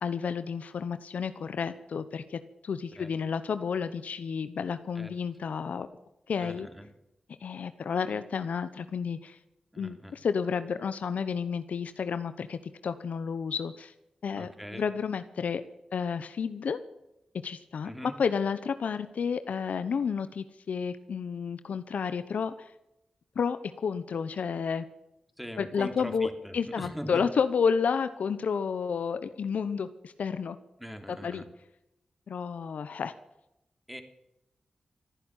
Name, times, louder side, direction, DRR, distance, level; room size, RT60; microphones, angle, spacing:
voice 1, 0.0-5.9 6.3-6.7 7.4-9.4 9.8-13.9 14.2-15.6 15.9-16.8 17.3-22.5 23.3-24.8 25.6-30.6 31.1-31.4 32.3-33.1, left 6 dB, 80° left, 12 dB, 0.9 m, -31 dB
voice 2, 6.4-6.9 9.7-10.2 14.3-14.8 17.8-18.2 25.4-27.2 30.8-31.5 33.9-34.0, equal, 5° right, 6 dB, 3.3 m, -41 dB
15.0 x 10.0 x 9.1 m, 0.86 s
cardioid pair, 40°, 2 cm